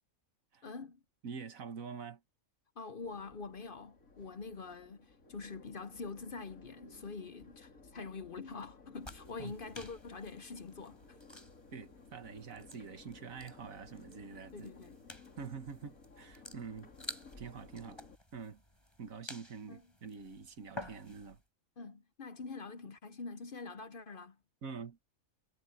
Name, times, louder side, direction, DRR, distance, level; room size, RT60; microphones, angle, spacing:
voice 1, 0.6-1.0 2.8-11.2 14.5-14.9 19.7-19.8 21.8-24.4, left 4 dB, 50° left, 0.8 m, -45 dB
voice 2, 1.2-2.2 9.4-9.5 11.7-14.7 15.4-16.9 17.4-18.0 18.3-18.6 19.0-21.4 24.6-25.1, right 6 dB, 80° right, 1.9 m, -46 dB
Crowd, 3.0-18.2, left 4 dB, 85° left, 3.4 m, -58 dB
sound 1, 9.0-21.4, equal, 20° left, 6.7 m, -52 dB
omnidirectional pair, 1.4 m